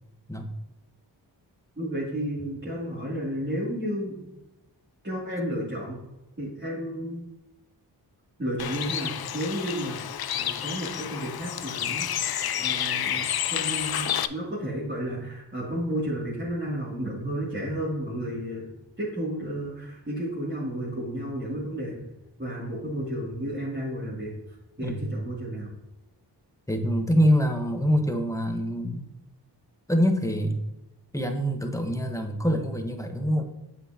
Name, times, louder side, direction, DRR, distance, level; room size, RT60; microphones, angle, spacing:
voice 1, 1.8-4.2 5.0-6.0 6.4-7.3 8.4-10.0 10.3-22.0 22.4-24.4 24.8-25.7, equal, 25° right, -8 dB, 2.7 m, -32 dB
Bird, 8.6-14.3, left 10 dB, 60° left, 0.5 m, -30 dB
voice 2, 26.7-29.1 29.9-30.6 31.1-33.4, equal, 5° left, 4 dB, 1.2 m, -25 dB
8.0 x 6.2 x 2.9 m, 0.98 s
cardioid pair, 55°, 42 cm